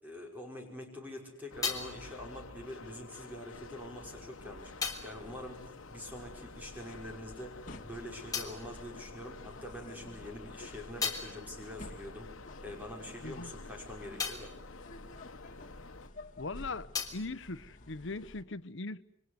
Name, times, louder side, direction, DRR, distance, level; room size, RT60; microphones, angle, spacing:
voice 1, 0.0-14.5, left 1 dB, 10° right, 5.5 m, -45 dB
sound 1, 0.9-6.8 7.1-9.8 10.2-16.2 16.4-18.5, left 5 dB, 20° left, 3.4 m, -43 dB
sound 2, 1.5-16.1, left 3 dB, 85° left, 1.3 m, -50 dB
sound 3, 3.5-18.4, left 1 dB, 40° left, 2.4 m, -52 dB
voice 2, 16.4-19.0, left 3 dB, 60° left, 1.0 m, -40 dB
28.5 x 24.5 x 8.1 m
head